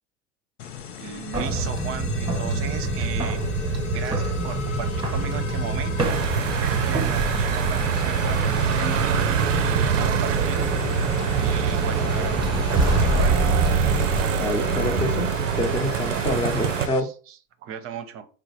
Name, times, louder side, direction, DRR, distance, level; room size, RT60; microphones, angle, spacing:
sound 1, 0.6-17.0, left 7 dB, 75° left, 0.6 m, -38 dB
voice 1, 1.0-3.4 3.7-9.4 9.7-11.1 11.4-13.4 17.0-18.3, right 8 dB, 35° right, 0.7 m, -36 dB
sound 2, 1.3-14.2, right 2 dB, 10° right, 1.1 m, -26 dB
sound 3, 6.0-16.9, right 8 dB, 80° right, 0.5 m, -25 dB
voice 2, 14.4-15.3 15.5-17.1, left 1 dB, 15° left, 0.8 m, -26 dB
4.7 x 2.0 x 4.2 m
hypercardioid pair, 80°, 37 cm